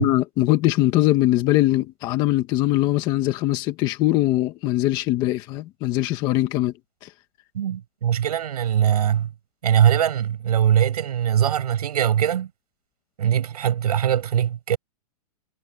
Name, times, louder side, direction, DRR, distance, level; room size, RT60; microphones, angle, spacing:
voice 1, 0.0-6.7 7.0-7.1, left 16 dB, 20° left, 1.2 m, -21 dB
voice 2, 7.5-9.3 9.6-12.5 13.2-14.8, right 10 dB, 75° right, 7.2 m, -21 dB
supercardioid pair, 175°, 20 cm